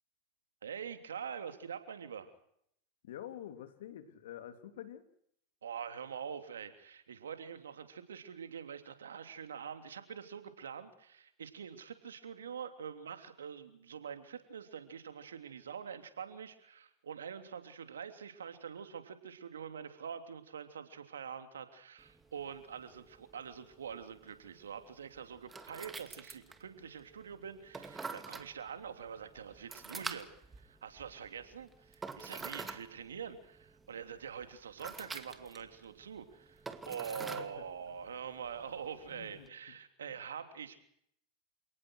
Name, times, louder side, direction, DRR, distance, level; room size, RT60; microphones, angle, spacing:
voice 1, 0.6-2.3 5.6-30.3 30.5-40.8, right 7 dB, 90° right, 8 dB, 3.1 m, -45 dB
voice 2, 3.0-5.0 37.1-37.6 39.1-39.5 40.0-40.1, left 11 dB, 75° left, 8 dB, 3.3 m, -48 dB
sound 1, 22.0-39.5, right 4 dB, 15° right, 2.4 m, -48 dB
28.5 x 18.5 x 6.5 m, 0.70 s
hypercardioid pair, 100°, 0 cm